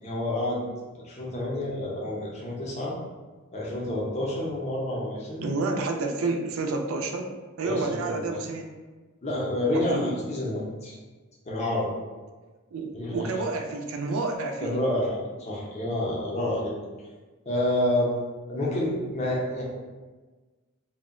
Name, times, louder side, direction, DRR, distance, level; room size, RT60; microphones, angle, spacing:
voice 1, 0.0-0.6 0.9-2.9 3.5-5.5 7.6-8.3 9.2-11.0 11.5-11.9 12.9-13.3 14.6-16.7 17.5-18.1 18.5-19.6, left 1 dB, 30° left, -4 dB, 0.5 m, -28 dB
voice 2, 5.4-7.3 7.6-8.7 9.7-10.2 12.7-14.8, right 3 dB, 65° right, 4 dB, 0.3 m, -29 dB
2.2 x 2.1 x 3.6 m, 1.3 s
head